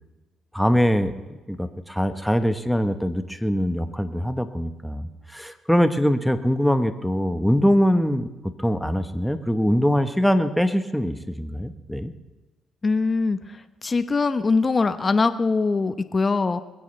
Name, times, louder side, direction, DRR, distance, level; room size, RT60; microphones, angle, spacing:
voice 1, 0.5-1.1 1.5-12.1, equal, ahead, 9 dB, 1.1 m, -23 dB
voice 2, 12.8-16.6, left 4 dB, 30° left, 11 dB, 0.9 m, -22 dB
21.5 x 15.5 x 3.3 m, 1.2 s
cardioid pair, 90°, 0 cm